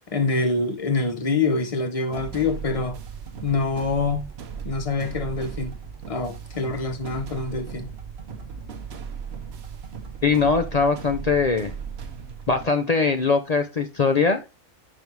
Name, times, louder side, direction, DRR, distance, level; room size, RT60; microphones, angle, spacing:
voice 1, 0.1-3.0 3.4-4.3 4.6-5.7 6.1-7.9, left 3 dB, 30° left, 0.9 m, -25 dB
sound 1, 2.1-12.7, right 6 dB, 55° right, 0.9 m, -37 dB
voice 2, 10.2-11.7 12.5-14.4, left 4 dB, 45° left, 0.5 m, -21 dB
5.5 x 5.3 x 4.6 m
omnidirectional pair, 1.4 m